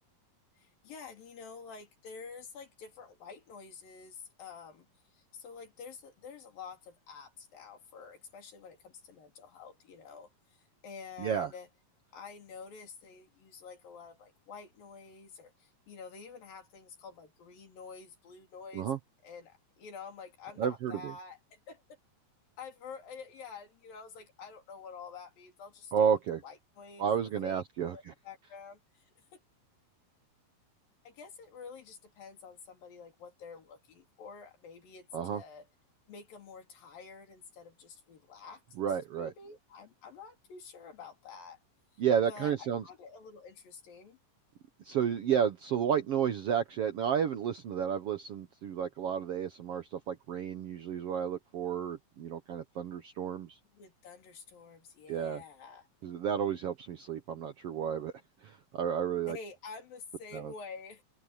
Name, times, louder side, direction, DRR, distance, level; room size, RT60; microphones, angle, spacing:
voice 1, 0.6-4.9 5.1-10.6 10.8-11.7 12.1-18.9 19.2-22.0 22.6-25.9 26.4-27.1 27.4-27.6 27.9-29.0 29.3-29.4 31.0-35.1 35.3-35.7 36.1-38.6 39.2-41.6 41.9-42.0 42.3-44.2 53.7-55.9 59.3-61.0, left 5 dB, 85° left, 5.2 m, -48 dB
voice 2, 11.2-11.5 18.7-19.0 20.6-21.1 25.9-26.4 27.0-28.1 35.1-35.4 38.8-39.3 42.0-42.8 44.8-53.5 55.1-55.4 56.0-58.1 58.4-59.4 60.3-60.5, right 8 dB, 70° right, 1.4 m, -31 dB
open air
omnidirectional pair, 4.0 m